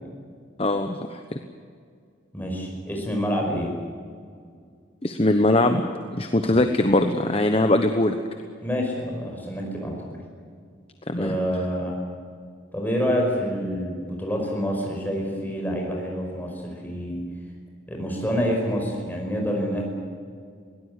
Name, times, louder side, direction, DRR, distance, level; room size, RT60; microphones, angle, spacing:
voice 1, 0.6-1.4 5.0-5.8 6.1-8.2 11.1-11.3, left 1 dB, 30° left, 6 dB, 1.1 m, -21 dB
voice 2, 2.3-3.7 8.6-10.2 11.1-12.0 12.7-17.2 17.9-19.8, equal, 10° left, 0 dB, 5.3 m, -27 dB
22.0 x 18.0 x 9.8 m, 2.1 s
head